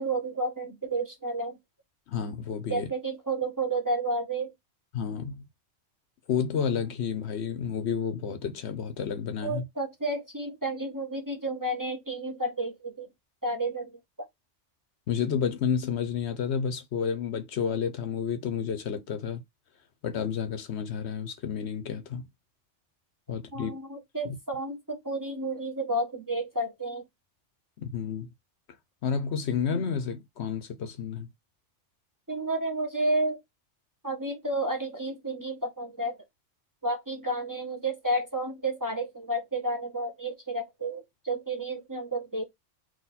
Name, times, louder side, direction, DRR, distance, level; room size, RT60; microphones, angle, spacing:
voice 1, 0.0-1.6 2.7-4.5 9.4-13.1 13.4-14.3 23.5-27.0 32.3-33.4 34.0-36.2 36.8-42.4, right 2 dB, 15° right, 1.0 m, -31 dB
voice 2, 2.1-2.9 4.9-5.4 6.3-9.6 15.1-19.4 20.0-22.3 23.3-23.7 24.2-24.4 27.8-28.3 29.0-31.3, left 7 dB, 65° left, 0.9 m, -30 dB
3.9 x 2.6 x 4.1 m
omnidirectional pair, 1.2 m